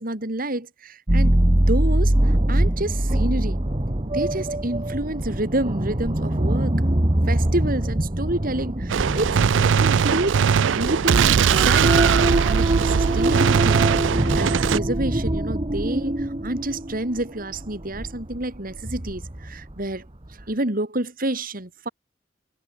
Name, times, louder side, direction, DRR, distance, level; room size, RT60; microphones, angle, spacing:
voice 1, 0.0-1.4 1.7-3.6 4.1-6.8 7.3-10.4 10.7-21.9, right 1 dB, 50° right, 3.4 m, -29 dB
sound 1, 1.1-19.8 20.3-20.4, right 1 dB, 30° right, 1.5 m, -24 dB
Gunshot gunfire, 8.9-14.8, right 7 dB, 90° right, 0.4 m, -20 dB
head